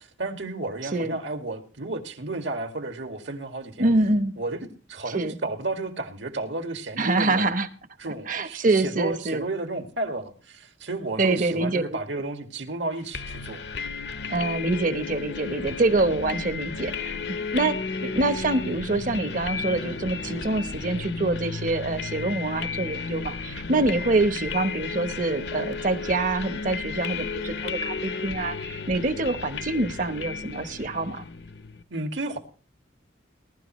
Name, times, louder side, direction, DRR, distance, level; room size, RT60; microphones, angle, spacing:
voice 1, 0.0-3.9 4.4-7.5 8.0-13.6 31.9-32.4, right 2 dB, 75° right, 2.1 m, -32 dB
voice 2, 3.8-4.4 5.1-5.4 7.0-7.7 8.3-9.4 11.2-11.8 14.3-31.2, right 2 dB, 45° right, 1.0 m, -25 dB
sound 1, 13.1-31.8, left 4 dB, 60° left, 0.8 m, -33 dB
20.5 x 12.5 x 3.1 m
head